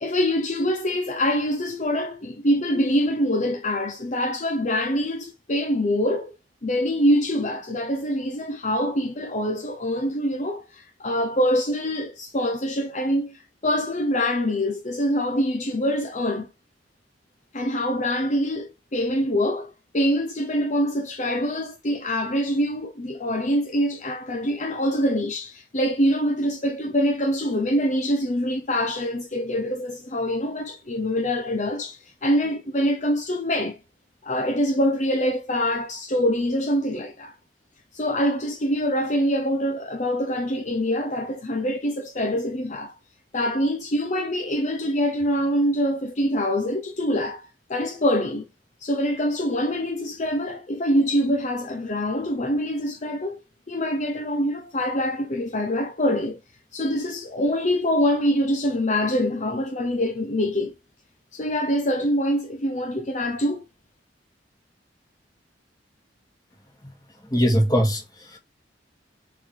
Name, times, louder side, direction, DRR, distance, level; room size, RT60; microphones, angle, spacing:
voice 1, 0.0-6.3 6.6-16.5 17.5-33.8 34.2-37.3 37.9-42.9 43.3-48.4 48.8-53.4 53.7-56.4 56.7-60.7 61.3-63.6, equal, 40° left, 0.9 m, -24 dB
voice 2, 67.3-68.4, equal, 20° left, 2.3 m, -21 dB
7.7 x 4.9 x 3.4 m
head